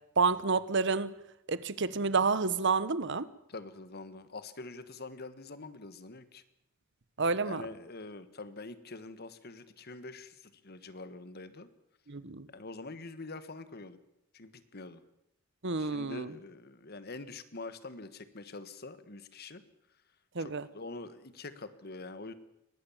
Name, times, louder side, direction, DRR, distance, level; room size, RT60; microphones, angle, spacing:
voice 1, 0.2-1.1 1.5-3.3 7.2-7.7 12.1-12.5 15.6-16.3 20.3-20.7, right 4 dB, 60° right, 16 dB, 1.1 m, -29 dB
voice 2, 3.5-6.4 7.4-11.7 12.5-14.0 14.3-15.0 15.8-19.6 20.4-22.3, left 3 dB, 50° left, 13 dB, 1.6 m, -45 dB
23.0 x 19.0 x 7.3 m, 0.84 s
head